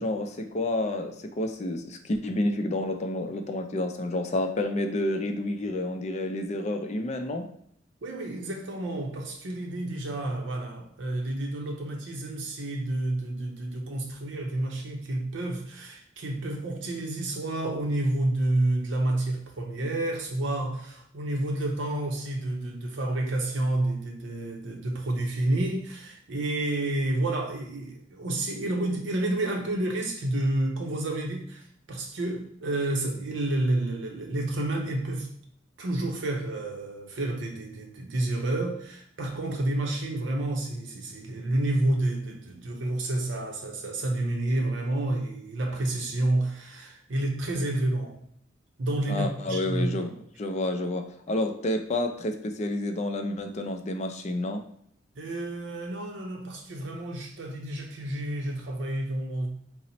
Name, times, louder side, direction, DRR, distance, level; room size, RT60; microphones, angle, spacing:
voice 1, 0.0-7.5 49.1-50.1 50.4-54.6, left 1 dB, 35° left, 5 dB, 0.4 m, -29 dB
voice 2, 8.0-35.3 35.8-48.2 48.8-50.1 55.2-59.5, right 1 dB, 70° right, 1 dB, 0.6 m, -29 dB
4.0 x 2.0 x 4.1 m, 0.67 s
head